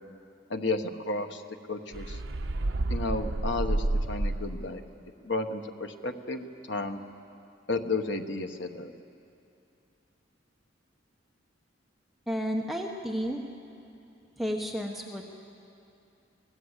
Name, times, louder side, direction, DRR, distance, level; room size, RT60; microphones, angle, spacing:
voice 1, 0.5-1.4 1.7-2.2 2.9-4.8 5.2-7.0 7.7-8.9, left 3 dB, 65° left, 6 dB, 1.1 m, -32 dB
sound 1, 1.9-4.7, right 2 dB, 65° right, 0.8 m, -30 dB
voice 2, 12.3-13.4 14.4-15.3, equal, ahead, 0 dB, 1.0 m, -32 dB
24.5 x 17.5 x 8.1 m, 2.6 s
head